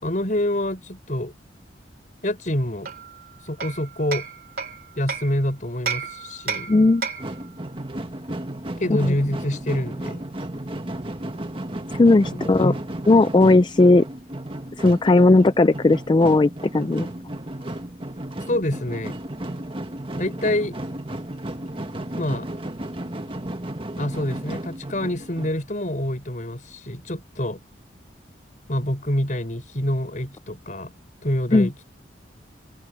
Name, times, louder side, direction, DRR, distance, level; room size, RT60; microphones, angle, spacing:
voice 1, 0.0-1.3 2.2-2.9 3.5-4.3 5.0-6.7 8.8-10.2 12.6-12.8 18.5-19.1 20.2-20.7 22.2-22.5 24.0-27.6 28.7-30.9 31.2-31.7, left 1 dB, 45° left, 5.1 m, -26 dB
Hammer, 2.8-5.4 5.9-7.4, right 5 dB, 55° right, 2.6 m, -32 dB
voice 2, 6.7-7.1 11.9-12.7 13.1-14.1 14.8-17.1 31.5-31.7, left 2 dB, 25° left, 0.4 m, -16 dB
sound 1, 7.2-25.5, right 1 dB, 30° right, 1.6 m, -34 dB
open air
head